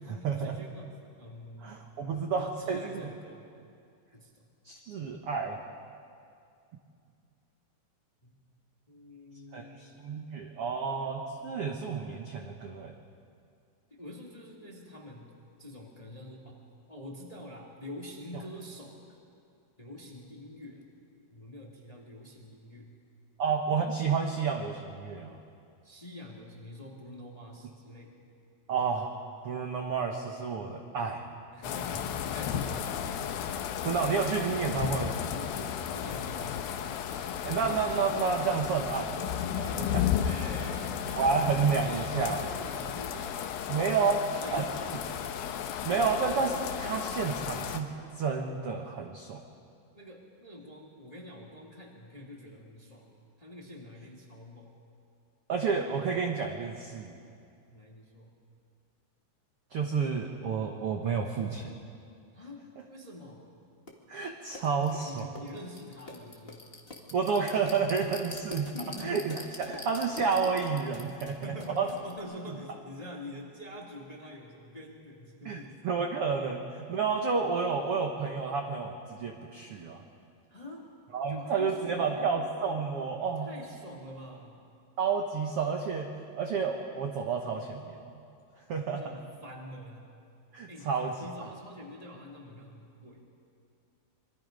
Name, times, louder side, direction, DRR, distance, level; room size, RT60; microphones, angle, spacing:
voice 1, 0.0-3.5 4.1-4.5 8.2-8.4 8.9-10.2 13.9-15.3 15.6-19.2 19.8-20.8 21.3-22.9 25.8-28.3 31.5-33.1 35.3-37.0 37.4-37.9 39.7-45.3 49.9-53.1 53.4-54.7 57.7-58.4 62.3-63.5 65.0-66.7 68.7-69.2 71.0-75.8 80.5-80.9 81.3-82.3 83.4-84.6 89.0-90.1 90.7-93.3, left 1 dB, 15° left, -2 dB, 1.4 m, -46 dB
voice 2, 1.6-3.1 4.6-5.6 9.5-12.9 23.4-25.4 28.7-29.1 29.4-31.2 33.8-35.3 37.4-40.1 41.2-42.4 43.7-44.2 44.5-44.6 45.8-47.9 48.2-49.4 55.5-57.1 59.7-61.7 64.1-65.3 67.1-68.7 69.0-71.9 75.4-80.0 81.1-83.5 85.0-86.1 86.3-88.0 88.7-89.0 90.5-91.1, right 5 dB, 75° right, 2 dB, 1.3 m, -30 dB
sound 1, 31.6-47.8, left 9 dB, 80° left, 2.6 m, -34 dB
sound 2, 63.9-64.0 64.5-72.2, left 2 dB, 45° left, 0.7 m, -45 dB
27.0 x 22.5 x 5.2 m, 2.4 s
omnidirectional pair, 4.4 m